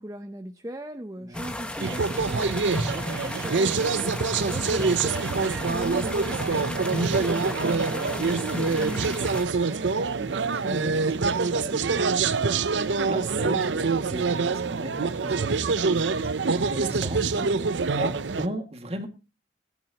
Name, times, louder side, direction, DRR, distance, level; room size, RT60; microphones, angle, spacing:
voice 1, 0.0-9.1, right 1 dB, 20° right, 7 dB, 0.7 m, -39 dB
voice 2, 1.2-1.5 2.9-3.2 9.6-12.4 13.1-19.1, right 1 dB, 35° right, 6 dB, 2.1 m, -37 dB
sound 1, 1.3-9.4, left 1 dB, 5° left, 1.3 m, -33 dB
sound 2, 1.8-18.5, right 4 dB, 85° right, 0.7 m, -25 dB
18.0 x 11.0 x 2.9 m, 0.30 s
head